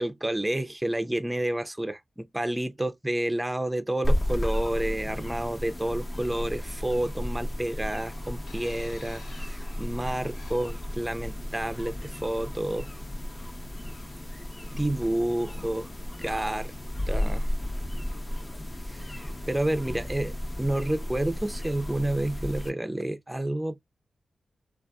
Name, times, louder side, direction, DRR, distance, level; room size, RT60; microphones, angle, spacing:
voice 1, 0.0-12.9 14.3-14.4 14.8-15.9 16.2-16.7 17.1-17.5 18.9-23.8, right 1 dB, 10° right, 0.4 m, -30 dB
sound 1, 4.0-22.7, left 1 dB, 30° left, 0.6 m, -33 dB
sound 2, 8.5-11.0 11.9-12.1, left 3 dB, 75° left, 1.1 m, -51 dB
2.5 x 2.3 x 2.2 m
cardioid pair, 55°, 0 cm